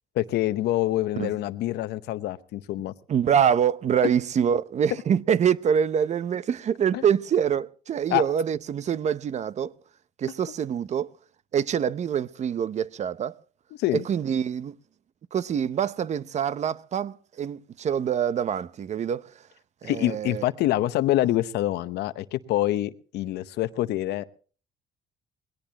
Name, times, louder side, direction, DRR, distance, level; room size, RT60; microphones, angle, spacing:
voice 1, 0.1-2.9 6.9-7.0 8.1-8.2 13.8-14.1 19.8-24.2, left 14 dB, 80° left, 0.9 m, -26 dB
voice 2, 3.1-9.7 10.2-11.1 11.5-13.4 13.9-14.8 15.3-19.3 19.8-20.4, right 8 dB, 40° right, 0.7 m, -25 dB
21.0 x 17.5 x 2.9 m
cardioid pair, 110°, 17 cm